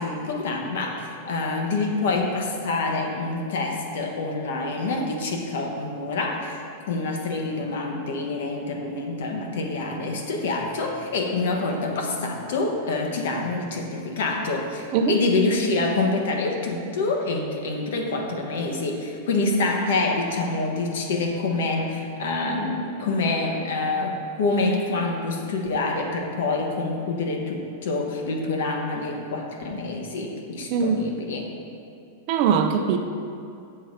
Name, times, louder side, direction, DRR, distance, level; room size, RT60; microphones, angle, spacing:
voice 1, 0.0-31.5, left 3 dB, 75° left, 2 dB, 1.2 m, -26 dB
voice 2, 30.7-31.0 32.3-33.0, right 6 dB, 45° right, 4 dB, 0.5 m, -21 dB
7.8 x 4.0 x 6.5 m, 2.6 s
supercardioid pair, 155°, 0 cm